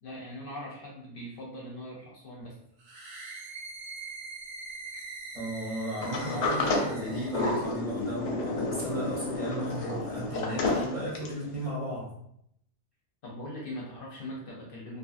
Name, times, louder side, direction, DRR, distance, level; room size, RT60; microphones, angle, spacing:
voice 1, 0.0-2.6 13.2-15.0, left 1 dB, 60° left, -3 dB, 0.7 m, -41 dB
sound 1, 2.8-7.6, right 3 dB, 65° right, 0.8 m, -43 dB
voice 2, 5.3-12.2, right 1 dB, 35° right, -7 dB, 0.7 m, -35 dB
Sliding door, 6.0-11.5, left 2 dB, 90° left, 0.9 m, -31 dB
2.7 x 2.4 x 2.5 m, 0.75 s
omnidirectional pair, 1.2 m